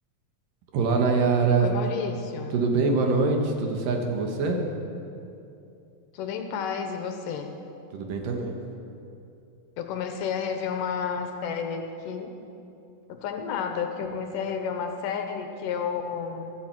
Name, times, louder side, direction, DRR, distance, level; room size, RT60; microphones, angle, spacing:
voice 1, 0.7-1.7 2.5-4.6 7.9-8.5, right 4 dB, 70° right, 2 dB, 2.9 m, -24 dB
voice 2, 1.6-2.5 6.1-7.6 9.8-12.3 13.1-16.5, left 6 dB, 75° left, 5 dB, 2.3 m, -31 dB
16.0 x 13.5 x 4.6 m, 2.7 s
omnidirectional pair, 4.1 m